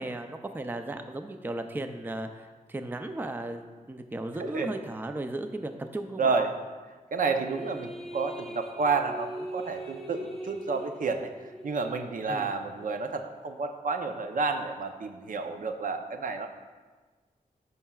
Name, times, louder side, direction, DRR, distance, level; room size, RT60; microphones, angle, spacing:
voice 1, 0.0-3.6 3.9-6.3 12.3-12.5, right 2 dB, 15° right, 7 dB, 0.4 m, -35 dB
voice 2, 6.2-6.5 7.1-11.3 11.6-16.5, right 4 dB, 70° right, 5 dB, 0.6 m, -30 dB
sound 1, 7.2-13.0, right 1 dB, ahead, 1.0 m, -42 dB
13.0 x 5.5 x 2.3 m, 1.4 s
wide cardioid pair, 105°, 15 cm